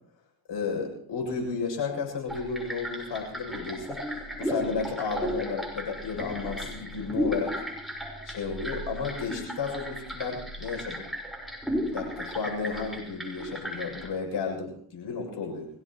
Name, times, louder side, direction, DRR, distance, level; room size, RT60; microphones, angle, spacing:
voice 1, 0.5-4.0 4.4-7.6 8.2-11.1 11.9-15.7, left 5 dB, 60° left, 0 dB, 7.2 m, -33 dB
sound 1, 2.3-14.1, equal, ahead, 5.3 m, -35 dB
24.5 x 16.5 x 3.1 m, 0.64 s
supercardioid pair, 70°, 48 cm